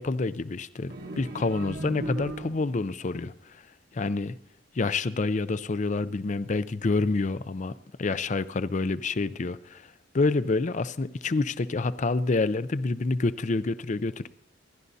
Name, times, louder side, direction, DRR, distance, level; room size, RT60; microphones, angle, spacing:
voice 1, 0.0-3.3 3.9-4.4 4.8-7.7 8.0-9.8 10.1-14.3, left 3 dB, 40° left, 0.5 m, -27 dB
sound 1, 0.9-2.9, right 2 dB, 55° right, 1.4 m, -37 dB
27.5 x 11.5 x 2.7 m
head